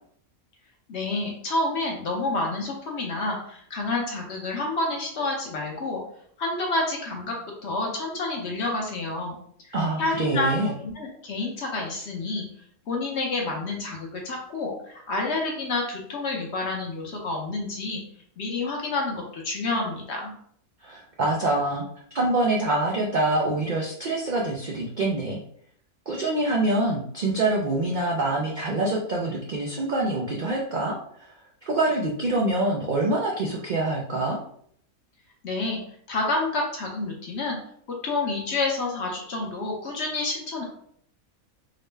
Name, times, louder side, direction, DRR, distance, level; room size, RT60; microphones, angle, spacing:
voice 1, 0.9-6.0 6.4-7.4 7.6-9.4 9.7-10.5 10.8-12.5 12.9-18.0 18.4-20.3 35.4-35.8 36.1-37.6 38.0-40.6, left 2 dB, 55° left, 0 dB, 1.0 m, -29 dB
voice 2, 9.7-10.7 20.8-21.9 22.1-25.4 26.1-31.3 31.7-34.4, right 2 dB, 85° right, -2 dB, 0.4 m, -25 dB
3.8 x 2.1 x 3.3 m, 0.64 s
omnidirectional pair, 1.5 m